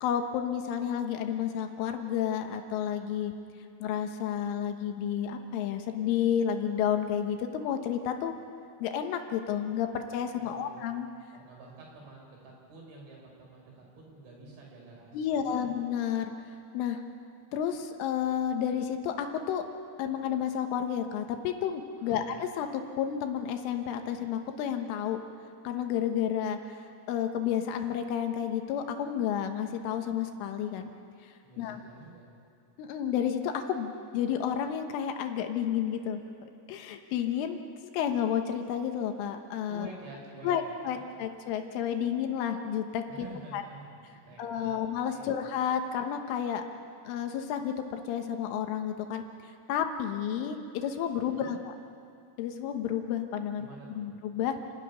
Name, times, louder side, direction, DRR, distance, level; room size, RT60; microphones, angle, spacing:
voice 1, 0.0-3.3 3.8-8.3 8.8-11.1 15.1-16.3 16.7-17.0 17.5-19.6 20.0-25.2 25.7-26.6 27.1-30.9 31.6-31.8 32.8-37.6 37.9-39.9 40.4-43.3 43.5-43.6 44.4-46.6 47.1-49.2 49.7-51.7 52.4-53.7 54.0-54.6, left 9 dB, 75° left, 5 dB, 3.5 m, -31 dB
voice 2, 10.4-10.8 11.3-15.7 22.1-22.3 31.4-32.2 39.7-41.2 43.1-43.9 44.3-44.8 45.1-45.4 51.2-51.5 53.6-54.0, right 2 dB, 65° right, -2 dB, 7.7 m, -49 dB
29.5 x 13.0 x 9.6 m, 2.5 s
omnidirectional pair, 5.9 m